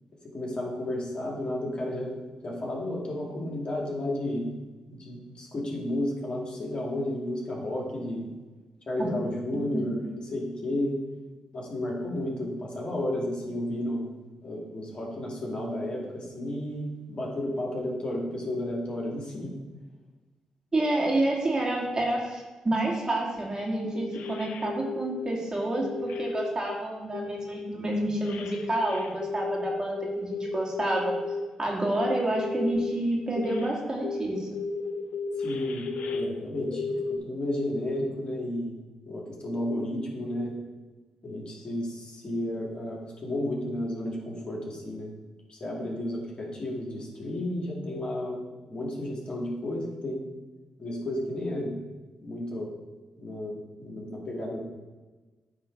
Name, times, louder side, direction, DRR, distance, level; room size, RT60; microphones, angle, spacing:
voice 1, 0.3-2.1 2.4-4.5 4.9-8.3 8.9-11.0 11.5-14.1 14.4-19.5 35.4-35.9 36.1-36.8 37.1-38.7 39.1-40.5 41.2-45.1 45.5-50.2 50.8-51.7 52.2-52.7 53.2-54.6, left 1 dB, 40° left, -2 dB, 2.4 m, -32 dB
voice 2, 20.7-31.1 31.6-34.5, right 1 dB, 30° right, -2 dB, 2.3 m, -29 dB
sound 1, 23.5-23.7 23.9-25.3 25.8-26.8 27.1-31.4 32.0-33.0 33.4-33.7 34.0-37.2, left 4 dB, 75° left, 0.6 m, -34 dB
9.0 x 3.7 x 5.2 m, 1.2 s
hypercardioid pair, 45°, 2 cm